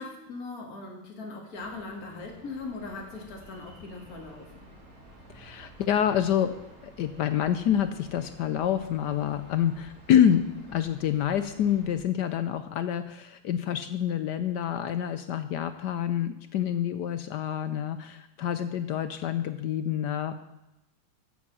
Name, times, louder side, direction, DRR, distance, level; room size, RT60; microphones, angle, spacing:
voice 1, 0.0-4.5, left 3 dB, 45° left, 0 dB, 2.4 m, -40 dB
sound 1, 1.5-12.0, right 1 dB, 45° right, 3.1 m, -51 dB
voice 2, 5.3-6.6 6.8-20.3, left 9 dB, 70° left, 11 dB, 1.1 m, -27 dB
14.5 x 7.4 x 6.1 m, 0.94 s
omnidirectional pair, 2.2 m